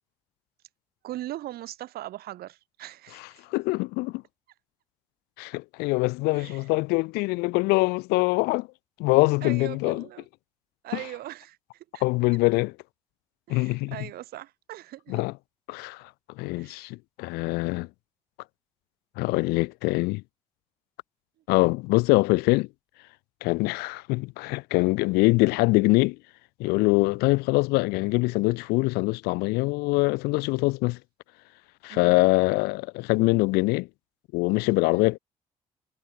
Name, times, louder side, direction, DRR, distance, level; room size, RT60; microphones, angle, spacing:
voice 1, 1.0-3.4 6.3-6.7 9.4-10.3 10.8-12.1 13.5-15.2 16.6-16.9 31.9-32.2 34.9-35.1, right 14 dB, 65° right, 7.6 m, -40 dB
voice 2, 3.5-4.2 5.4-8.7 9.0-10.0 10.9-11.0 12.0-12.7 13.5-14.0 15.1-15.3 15.7-16.1 16.4-17.9 19.2-20.2 21.5-22.7 23.4-26.2 26.6-31.0 31.8-33.9 34.3-35.2, left 24 dB, 70° left, 0.9 m, -24 dB
hypercardioid pair, 45°, 17 cm